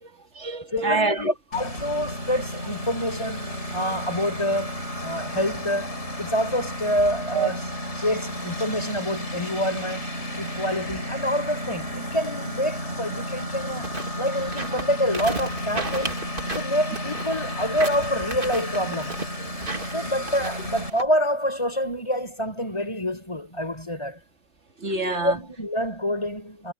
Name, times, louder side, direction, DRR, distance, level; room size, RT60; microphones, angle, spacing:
voice 1, 0.0-1.3 7.3-7.5 24.8-25.4, right 3 dB, 80° right, 2.4 m, -26 dB
voice 2, 0.7-7.6 8.0-10.1 10.4-13.9 14.2-19.2 19.9-24.2 25.2-26.7, equal, 25° left, 5.4 m, -27 dB
Engine, 1.5-20.9, left 1 dB, 80° left, 7.2 m, -33 dB
sound 1, 13.8-21.0, right 3 dB, 50° right, 2.6 m, -34 dB
omnidirectional pair, 1.2 m